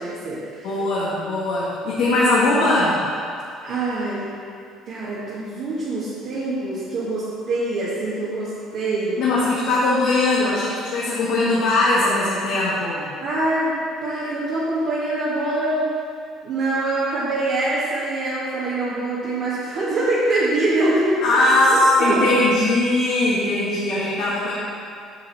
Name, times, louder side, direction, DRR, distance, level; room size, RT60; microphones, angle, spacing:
voice 1, 0.0-0.7 3.6-4.3 4.9-9.2 13.2-13.8 14.0-15.9 16.4-22.2, right 2 dB, 65° right, -10 dB, 1.8 m, -24 dB
voice 2, 0.6-3.0 9.2-13.1 21.2-24.5, left 2 dB, 75° left, -9 dB, 1.9 m, -20 dB
8.1 x 5.9 x 4.2 m, 2.4 s
supercardioid pair, 85°, 0 cm